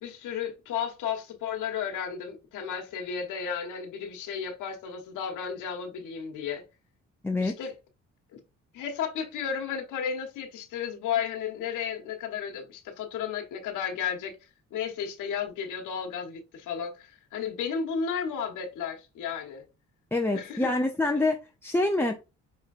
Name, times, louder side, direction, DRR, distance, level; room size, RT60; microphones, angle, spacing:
voice 1, 0.0-6.6 7.4-7.7 8.3-8.4 8.7-14.4 14.7-19.6 20.3-20.7, left 7 dB, 85° left, 1.2 m, -33 dB
voice 2, 7.2-7.6 20.1-22.2, left 2 dB, 10° left, 0.5 m, -26 dB
5.7 x 3.1 x 2.4 m
cardioid pair, 90°, 30 cm